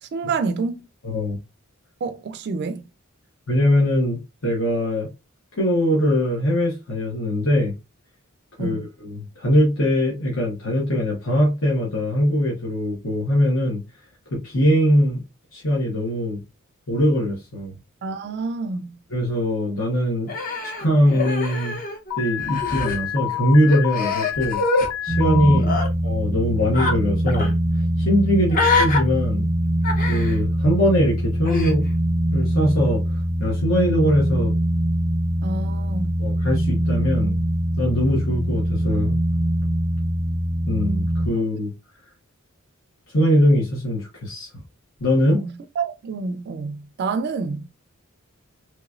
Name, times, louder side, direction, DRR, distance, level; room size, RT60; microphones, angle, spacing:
voice 1, 0.0-0.8 2.0-2.8 8.6-8.9 18.0-18.9 25.4-25.8 28.4-28.5 35.4-36.1 45.3-45.5 45.8-47.7, right 4 dB, 50° right, 0.3 m, -28 dB
voice 2, 1.0-1.4 3.5-5.1 5.6-7.7 8.6-13.8 14.3-15.2 15.5-16.4 16.9-17.7 19.1-20.3 20.6-21.8 22.2-24.6 25.0-25.7 26.0-27.5 28.0-29.5 30.1-31.9 32.3-34.5 36.2-37.4 37.8-39.2 40.7-41.7 43.1-44.5 45.0-45.4, equal, 65° left, 1.2 m, -21 dB
Human voice, 20.3-22.1 22.4-23.0 23.7-24.9 25.6-25.9 26.7-27.0 27.3-27.5 28.5-29.0 29.8-30.4 31.4-31.7, left 3 dB, 40° left, 0.8 m, -24 dB
Alarm, 22.1-25.6, left 13 dB, 85° left, 0.3 m, -28 dB
sound 1, 25.1-41.3, right 1 dB, 5° left, 0.7 m, -23 dB
3.1 x 3.0 x 2.4 m
head